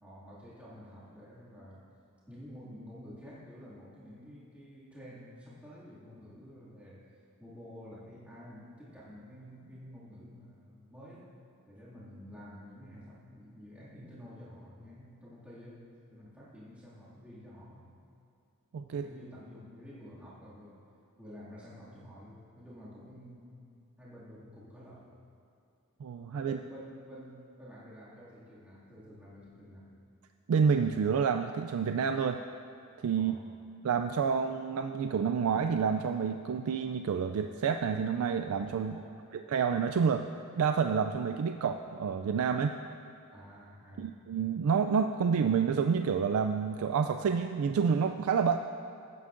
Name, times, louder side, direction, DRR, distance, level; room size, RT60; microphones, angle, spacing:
voice 1, 0.0-1.9 2.3-11.3 11.6-18.0 18.9-20.8 21.2-23.6 24.0-25.1 26.4-29.9 33.1-33.5 38.9-39.3 43.3-44.2, equal, 5° right, -10 dB, 2.2 m, -50 dB
voice 2, 18.7-19.1 26.0-26.6 30.5-32.4 33.0-33.4 33.8-39.0 39.5-40.3 40.6-42.7 44.0-48.6, right 6 dB, 75° right, 7 dB, 0.3 m, -28 dB
17.5 x 9.3 x 2.6 m, 2.6 s
head